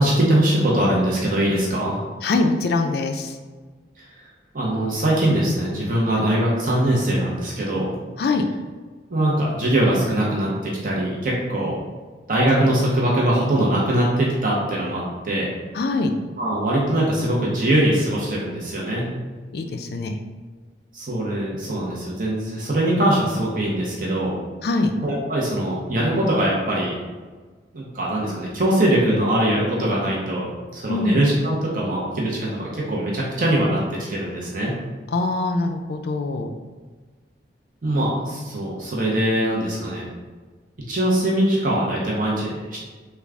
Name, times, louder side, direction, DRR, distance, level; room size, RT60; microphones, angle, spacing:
voice 1, 0.0-2.0 4.0-4.1 4.5-8.0 9.1-11.8 12.3-15.5 16.4-19.1 20.9-24.4 25.0-27.0 27.7-34.7 37.8-40.0 40.9-42.8, right 1 dB, 50° right, -4 dB, 0.7 m, -22 dB
voice 2, 2.2-3.4 8.2-8.4 15.7-16.1 19.5-20.1 24.6-24.9 30.9-31.2 35.1-36.5 37.9-38.1 38.3-38.4, left 3 dB, 60° left, 5 dB, 0.3 m, -23 dB
3.5 x 2.3 x 3.3 m, 1.4 s
head